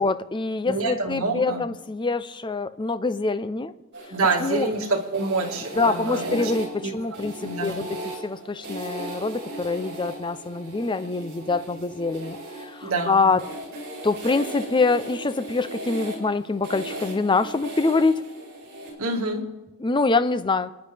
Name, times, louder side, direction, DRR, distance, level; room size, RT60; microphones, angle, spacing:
voice 1, 0.0-3.7 4.4-4.7 5.7-13.4 14.0-18.2 19.8-20.7, left 3 dB, 20° left, 12 dB, 0.5 m, -25 dB
voice 2, 0.7-1.6 4.1-6.5 6.8-6.9 7.4-7.8 12.8-13.3 19.0-19.5, right 3 dB, 65° right, 1 dB, 1.9 m, -27 dB
sound 1, 3.9-18.9, right 1 dB, 50° right, 4.7 m, -37 dB
27.5 x 10.0 x 3.4 m, 1.1 s
head